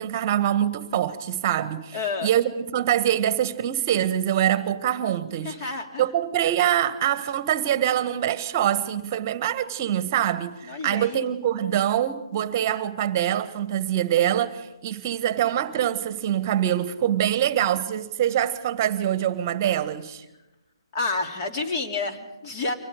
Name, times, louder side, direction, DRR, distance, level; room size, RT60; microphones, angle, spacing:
voice 1, 0.0-5.7 6.0-20.2, right 11 dB, 30° right, 1.4 m, -24 dB
voice 2, 1.9-2.3 5.4-6.0 10.7-11.3 20.9-22.7, left 3 dB, 30° left, 3.0 m, -29 dB
29.5 x 24.5 x 5.1 m
figure-of-eight pair, 140°, 3 cm